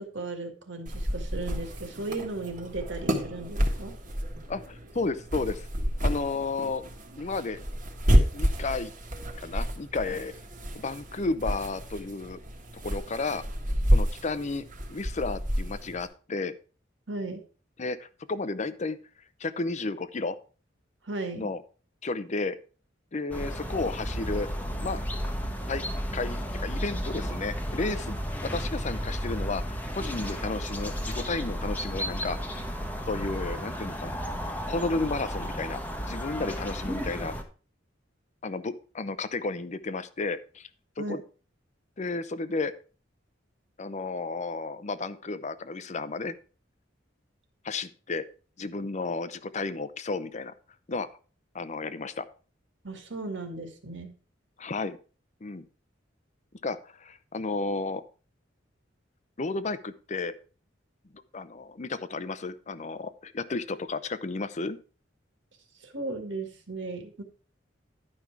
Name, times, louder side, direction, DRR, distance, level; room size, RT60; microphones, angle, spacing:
voice 1, 0.0-3.9 17.1-17.4 21.0-21.5 41.0-41.2 52.8-54.1 65.8-67.2, right 3 dB, 70° right, 5 dB, 1.8 m, -36 dB
sound 1, 0.9-16.1, equal, 45° right, 1.6 m, -30 dB
voice 2, 4.5-5.7 6.0-6.8 7.2-7.6 8.3-8.9 9.4-10.3 10.7-12.4 12.8-13.4 13.9-14.6 14.9-16.6 17.8-19.0 19.4-20.4 21.4-21.6 22.0-22.6 23.1-24.5 24.8-25.0 25.7-25.8 26.1-28.2 28.4-32.4 33.1-34.1 34.7-35.8 36.1-37.3 38.4-40.7 41.0-41.2 42.0-42.7 43.8-46.3 47.6-48.2 48.6-50.5 50.9-51.1 51.5-52.3 54.6-55.0 55.4-55.6 56.6-58.0 59.4-60.3 61.3-64.8, left 3 dB, 40° left, 14 dB, 0.6 m, -32 dB
sound 2, 23.3-37.4, equal, 10° left, 1.1 m, -33 dB
11.0 x 5.4 x 4.7 m, 0.37 s
head